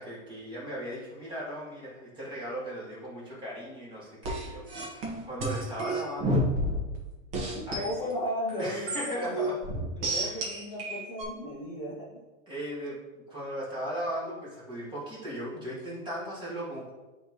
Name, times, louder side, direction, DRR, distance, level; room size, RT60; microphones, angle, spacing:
voice 1, 0.0-6.5 7.7-8.1 8.6-9.6 10.1-10.4 12.5-13.0 13.3-16.9, equal, 10° right, -6 dB, 1.5 m, -37 dB
sound 1, 4.2-7.0 7.3-7.9 8.5-11.2, right 1 dB, 45° right, 1.7 m, -30 dB
voice 2, 7.5-9.5 10.0-12.2, left 1 dB, 15° left, -6 dB, 0.6 m, -35 dB
10.0 x 3.6 x 3.0 m, 1.2 s
supercardioid pair, 165°, 40 cm